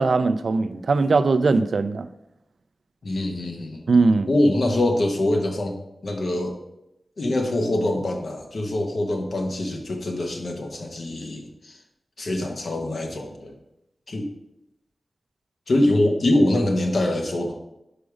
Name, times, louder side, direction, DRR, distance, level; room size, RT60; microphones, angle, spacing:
voice 1, 0.0-2.1 3.9-4.3, right 3 dB, 75° right, 12 dB, 0.3 m, -20 dB
voice 2, 3.0-3.9 4.3-5.8 6.0-6.6 7.2-11.8 12.2-13.6 14.1-14.3 15.7-17.6, left 1 dB, 70° left, 2 dB, 1.0 m, -24 dB
5.1 x 4.9 x 4.9 m, 0.86 s
cardioid pair, 55°, 0 cm